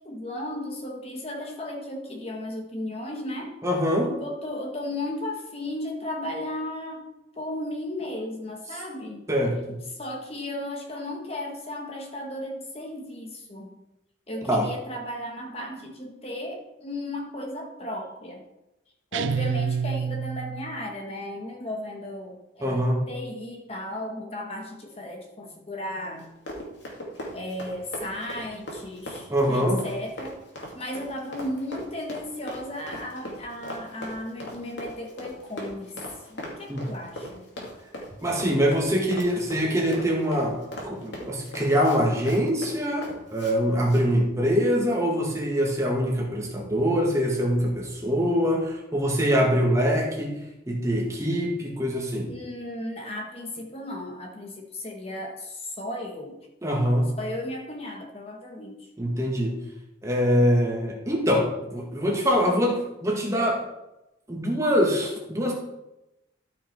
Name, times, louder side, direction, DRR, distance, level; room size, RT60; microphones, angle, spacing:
voice 1, 0.0-3.6 4.0-7.1 7.4-9.2 10.0-13.7 14.3-18.4 19.1-26.3 27.3-30.4 30.7-35.9 36.3-37.4 52.3-56.4 57.2-58.8, left 1 dB, 30° left, 1 dB, 1.3 m, -35 dB
voice 2, 3.6-4.1 9.3-9.8 14.4-14.7 22.6-23.0 29.3-29.9 36.7-36.9 38.2-50.4 50.7-52.3 56.6-57.1 59.0-59.6 60.0-63.6 64.3-65.5, equal, 15° right, -1 dB, 1.7 m, -24 dB
sound 1, 19.1-20.8, right 6 dB, 80° right, 0.5 m, -28 dB
Run, 26.2-43.5 43.8-44.0, equal, 70° left, 2.5 m, -39 dB
13.0 x 5.8 x 4.6 m, 0.92 s
head